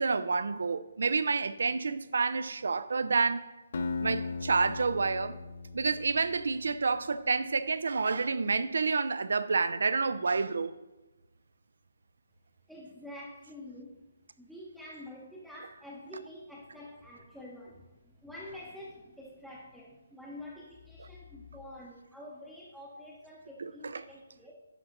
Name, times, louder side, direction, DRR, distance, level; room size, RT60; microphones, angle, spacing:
voice 1, 0.0-3.5 4.0-5.4 5.7-10.7 23.6-24.0, right 4 dB, 80° right, 0.4 m, -29 dB
Acoustic guitar, 3.7-6.7, left 4 dB, 60° left, 0.5 m, -37 dB
voice 2, 12.7-14.1 14.4-24.5, left 1 dB, ahead, 0.7 m, -47 dB
10.0 x 5.2 x 3.0 m
hypercardioid pair, 165°, 0 cm